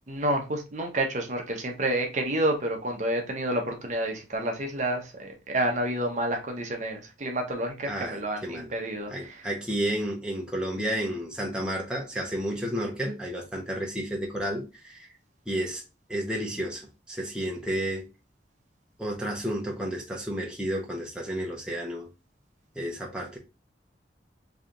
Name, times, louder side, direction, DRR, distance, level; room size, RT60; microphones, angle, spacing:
voice 1, 0.1-9.5, right 1 dB, 40° right, 0.7 m, -29 dB
voice 2, 7.9-8.7 9.1-15.1 15.5-15.8 16.1-18.1 19.0-22.1 22.8-23.4, equal, 5° right, 0.7 m, -31 dB
3.2 x 2.8 x 3.6 m
head